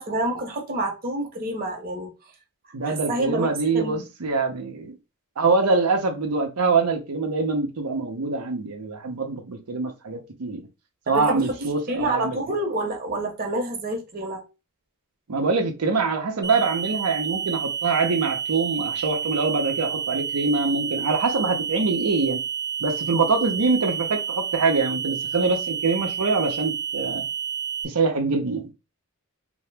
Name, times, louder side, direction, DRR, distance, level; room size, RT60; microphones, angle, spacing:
voice 1, 0.0-2.1 2.8-3.5 3.7-4.1 11.1-14.4, right 1 dB, 40° right, 0.8 m, -28 dB
voice 2, 2.7-5.0 5.4-10.6 11.1-12.4 15.3-22.4 22.8-27.2 27.8-28.7, right 4 dB, 90° right, 0.7 m, -24 dB
sound 1, 16.4-27.8, right 7 dB, 10° left, 0.6 m, -30 dB
2.8 x 2.1 x 3.3 m
head